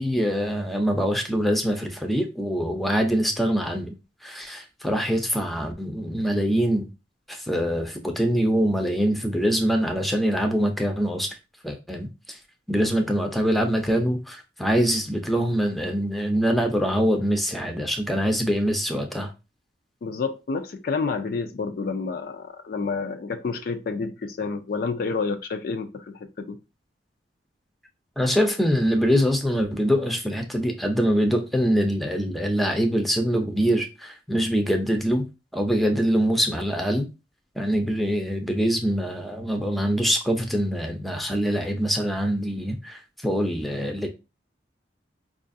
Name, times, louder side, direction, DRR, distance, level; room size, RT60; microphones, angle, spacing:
voice 1, 0.0-3.9 4.2-6.9 7.3-11.3 11.6-12.4 12.7-19.3 28.2-35.3 35.5-37.1 37.6-44.1, equal, ahead, 0.5 m, -24 dB
voice 2, 20.0-26.6, left 4 dB, 55° left, 0.4 m, -29 dB
4.6 x 2.4 x 2.5 m
head